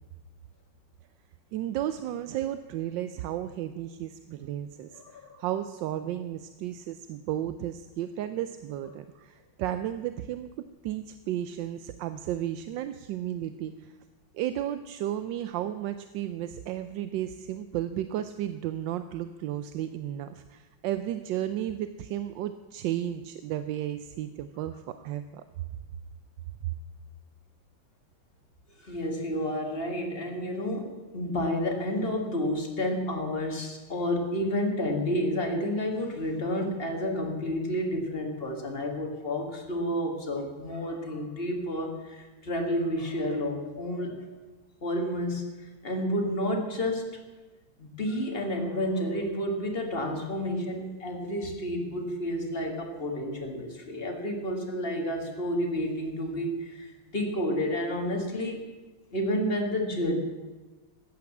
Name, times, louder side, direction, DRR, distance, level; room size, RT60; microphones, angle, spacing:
voice 1, 1.5-10.5 10.8-13.9 14.3-25.4 26.6-26.7, right 12 dB, 75° right, 11 dB, 1.2 m, -33 dB
voice 2, 4.9-5.4 28.8-44.2 44.8-45.5 45.8-47.2 47.8-58.6 59.1-60.2, equal, 30° left, 2 dB, 2.0 m, -30 dB
14.0 x 9.5 x 7.2 m, 1.2 s
omnidirectional pair, 2.3 m